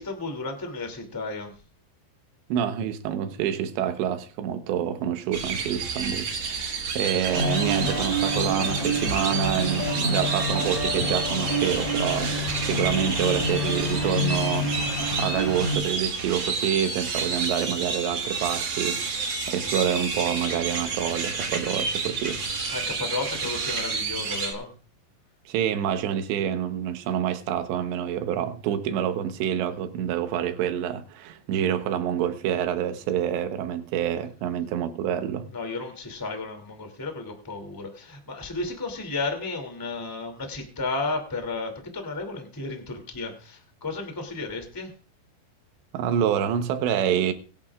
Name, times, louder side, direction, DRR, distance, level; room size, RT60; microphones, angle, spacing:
voice 1, 0.0-1.5 22.7-24.7 35.5-44.9, left 3 dB, 5° left, 1.6 m, -33 dB
voice 2, 2.5-14.7 15.2-19.1 19.5-22.4 25.5-35.5 45.9-47.3, right 9 dB, 85° right, 3.3 m, -27 dB
sound 1, 5.3-24.5, right 4 dB, 55° right, 1.3 m, -30 dB
sound 2, 7.3-15.8, equal, 30° left, 6.4 m, -28 dB
23.0 x 11.0 x 2.5 m
omnidirectional pair, 5.0 m